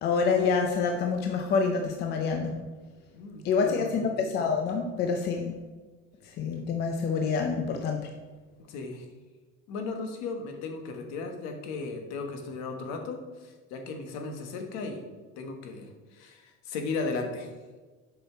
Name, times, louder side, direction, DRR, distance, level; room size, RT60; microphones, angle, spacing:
voice 1, 0.0-2.6 3.4-5.6 6.4-8.1, left 5 dB, 35° left, 4 dB, 0.5 m, -27 dB
voice 2, 3.1-4.1 8.7-9.1 9.7-15.0 15.4-17.5, left 3 dB, 60° left, 4 dB, 1.3 m, -36 dB
7.1 x 5.4 x 4.4 m, 1.3 s
cardioid pair, 165°, 31 cm